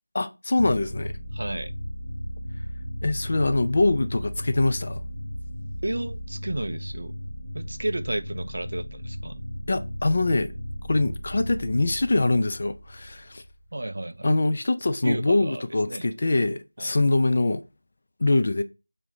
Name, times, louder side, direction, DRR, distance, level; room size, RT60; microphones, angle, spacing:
voice 1, 0.1-1.2 3.0-5.0 9.7-10.5 10.9-13.4 14.2-17.6 18.2-18.6, left 2 dB, 35° left, 0.3 m, -23 dB
sound 1, 0.6-14.0, equal, 80° left, 0.6 m, -35 dB
voice 2, 1.3-1.7 5.8-7.2 7.5-9.5 13.7-14.3 15.0-16.1 16.8-17.0, right 1 dB, 50° right, 0.3 m, -32 dB
5.5 x 2.6 x 3.3 m
figure-of-eight pair, 170°, 0 cm